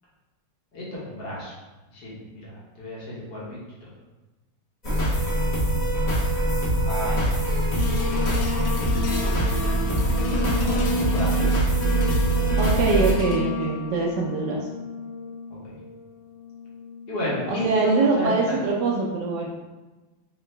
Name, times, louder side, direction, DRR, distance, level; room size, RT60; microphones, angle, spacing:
voice 1, 0.7-1.5 1.9-2.5 2.8-3.4 6.8-7.4 10.6-11.4 15.5-15.7 17.1-18.6, left 1 dB, 60° left, -7 dB, 1.6 m, -32 dB
sound 1, 4.8-13.1, right 1 dB, 30° left, 0.9 m, -23 dB
sound 2, 7.7-18.1 18.7-18.8, left 5 dB, 85° left, 1.4 m, -33 dB
voice 2, 12.6-14.7 17.5-19.5, right 3 dB, 75° right, -1 dB, 1.1 m, -23 dB
3.8 x 2.9 x 3.3 m, 1.1 s
omnidirectional pair, 2.1 m